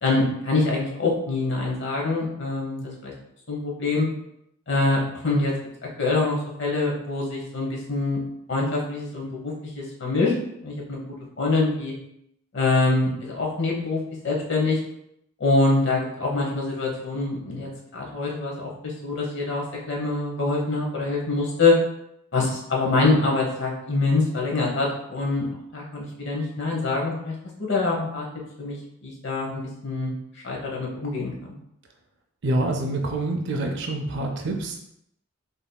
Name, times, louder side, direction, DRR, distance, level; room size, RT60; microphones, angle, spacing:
voice 1, 0.0-3.1 3.5-4.1 4.7-5.5 6.0-8.2 8.5-10.3 10.6-11.9 12.5-14.0 14.2-14.8 15.4-21.8 22.3-25.5 25.7-27.3 27.6-28.3 28.6-28.8 29.0-30.1 30.4-31.3, left 3 dB, 55° left, -2 dB, 1.0 m, -25 dB
voice 2, 32.4-34.8, right 2 dB, 55° right, 2 dB, 0.5 m, -26 dB
5.3 x 2.7 x 2.2 m, 0.76 s
head